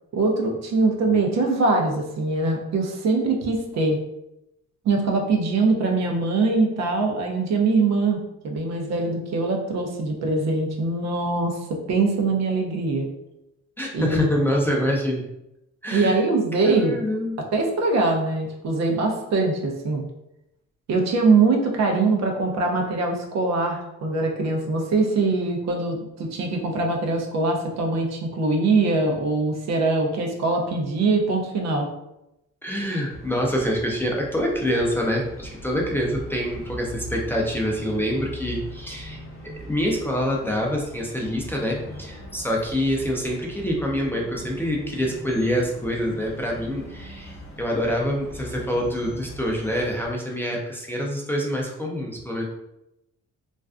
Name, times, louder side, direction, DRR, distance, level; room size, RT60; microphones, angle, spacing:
voice 1, 0.1-4.0 4.8-13.1 13.9-14.3 15.9-17.0 17.5-20.0 20.9-31.9, right 3 dB, 60° right, 1 dB, 0.6 m, -22 dB
voice 2, 13.8-15.2 15.8-16.2 16.6-17.4 32.6-39.2 39.7-52.4, equal, 5° left, -2 dB, 0.4 m, -26 dB
sound 1, 33.1-50.1, equal, 45° left, 0.7 m, -40 dB
2.4 x 2.2 x 2.4 m, 0.87 s
cardioid pair, 90°, 30 cm